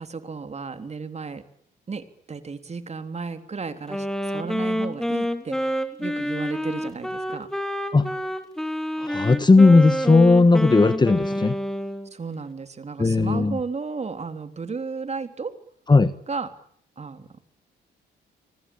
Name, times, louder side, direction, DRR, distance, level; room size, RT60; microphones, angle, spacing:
voice 1, 0.0-1.4 1.9-7.5 12.1-15.6 16.3-16.5 17.0-17.3, right 4 dB, 35° right, 9 dB, 3.4 m, -34 dB
Wind instrument woodwind instrument, 3.9-12.1, equal, ahead, 3.4 m, -28 dB
voice 2, 9.0-11.6 13.0-13.6 15.9-16.1, left 3 dB, 20° left, 13 dB, 1.5 m, -16 dB
27.0 x 25.0 x 8.7 m, 0.64 s
cardioid pair, 90°, 20 cm